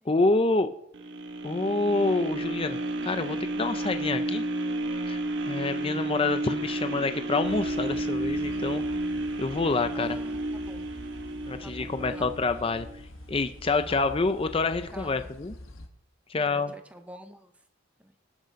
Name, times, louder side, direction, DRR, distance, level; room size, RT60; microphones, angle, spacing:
voice 1, 0.1-0.7 1.4-2.8 3.0-4.4 5.1-5.2 5.5-8.8 9.4-10.2 11.5-12.9 13.3-15.5 16.3-16.7, left 3 dB, 25° left, 9 dB, 0.5 m, -27 dB
sound 1, 0.9-13.0 13.5-13.6, right 1 dB, 60° right, 1.1 m, -32 dB
sound 2, 7.4-15.9, left 1 dB, 75° left, 1.6 m, -45 dB
voice 2, 10.0-10.9 11.6-12.3 13.9-14.0 14.9-15.3 16.4-17.6 18.0-18.1, equal, 5° right, 7 dB, 0.8 m, -47 dB
18.0 x 6.6 x 5.2 m, 0.72 s
head